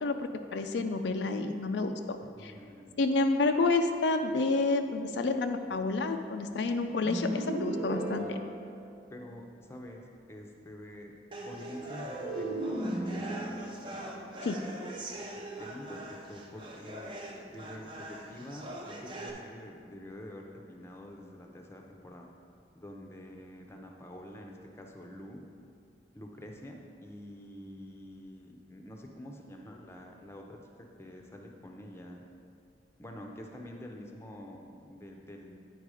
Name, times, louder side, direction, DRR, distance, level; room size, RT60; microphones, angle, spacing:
voice 1, 0.0-2.5 3.0-8.4 14.4-14.6, left 3 dB, 75° left, 6 dB, 0.4 m, -29 dB
voice 2, 2.2-3.0 8.2-8.4 9.1-11.1 11.5-14.1 15.6-17.1 17.5-22.3 22.7-25.4 26.1-30.6 31.0-32.2 33.0-35.6, left 1 dB, 15° left, 1 dB, 0.6 m, -47 dB
sound 1, 7.0-9.4 11.8-15.2, right 1 dB, 55° right, 1.0 m, -36 dB
sound 2, 11.3-19.3, right 1 dB, 25° right, 0.7 m, -43 dB
8.9 x 4.6 x 4.8 m, 2.4 s
head